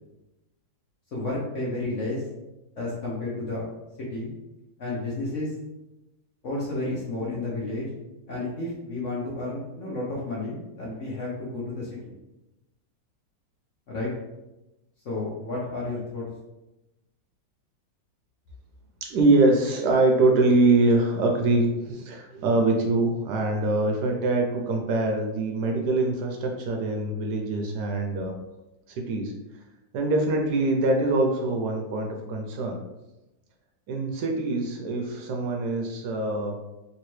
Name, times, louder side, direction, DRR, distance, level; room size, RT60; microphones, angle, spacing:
voice 1, 1.1-2.2 2.8-3.6 4.1-4.3 4.8-5.5 6.4-7.9 8.3-12.1 13.9-14.1 15.0-16.3, left 2 dB, 60° left, -5 dB, 0.8 m, -31 dB
voice 2, 19.0-28.3 28.9-29.3 29.9-32.8 33.9-36.6, right 2 dB, 75° right, 2 dB, 1.1 m, -24 dB
3.2 x 2.9 x 3.1 m, 0.98 s
omnidirectional pair, 2.0 m